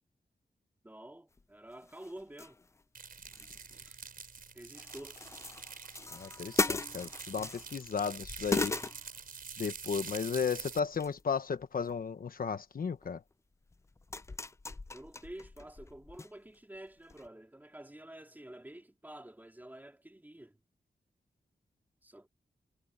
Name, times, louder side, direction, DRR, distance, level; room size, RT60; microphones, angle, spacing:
voice 1, 0.8-2.6 3.7-4.0 4.5-5.2 14.9-20.6 22.0-22.3, right 1 dB, 10° right, 3.5 m, -49 dB
sound 1, 1.4-1.5 1.8-2.8 3.1-4.4 4.7-7.9 8.2-9.7 10.4-11.2 11.6-12.0 13.0-13.1 13.7-16.3 16.5-16.6 17.1-17.3, left 3 dB, 20° left, 0.3 m, -38 dB
sound 2, 2.9-10.8, right 5 dB, 70° right, 4.7 m, -46 dB
voice 2, 6.1-8.7 9.6-13.2, left 6 dB, 70° left, 1.1 m, -34 dB
wide cardioid pair, 140°, 15 cm